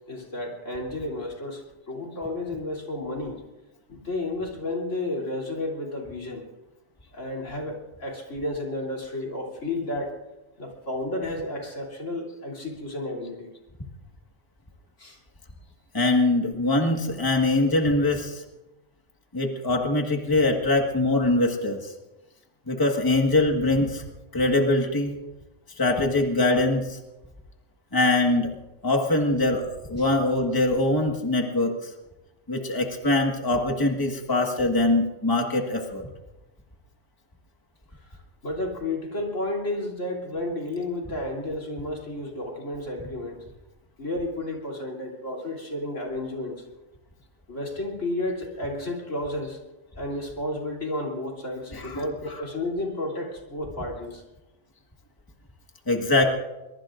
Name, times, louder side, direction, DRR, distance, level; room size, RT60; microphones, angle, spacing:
voice 1, 0.1-3.4 3.9-6.4 7.1-10.1 10.6-13.5 15.0-15.2 30.0-30.1 37.9-43.4 44.0-46.6 47.5-49.6 50.0-54.2, left 1 dB, 85° left, -1 dB, 3.6 m, -32 dB
voice 2, 15.9-18.4 19.3-21.9 22.7-24.0 24.3-25.2 25.8-27.0 27.9-28.5 28.8-31.9 32.5-36.1 51.7-52.0 55.9-56.2, left 2 dB, 20° left, 2 dB, 1.7 m, -23 dB
23.0 x 22.5 x 2.6 m, 1.0 s
omnidirectional pair, 1.2 m